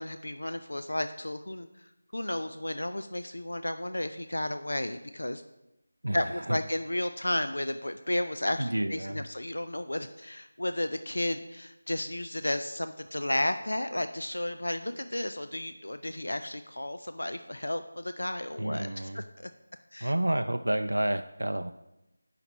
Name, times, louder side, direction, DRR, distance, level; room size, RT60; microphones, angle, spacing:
voice 1, 0.0-5.4 6.1-19.5 19.9-20.1, left 1 dB, 85° left, 9 dB, 0.4 m, -33 dB
voice 2, 6.0-6.6 8.6-9.2 18.6-19.2 20.0-21.7, right 1 dB, 85° right, 8 dB, 0.3 m, -30 dB
7.4 x 5.7 x 4.1 m, 0.92 s
figure-of-eight pair, 170°, 0 cm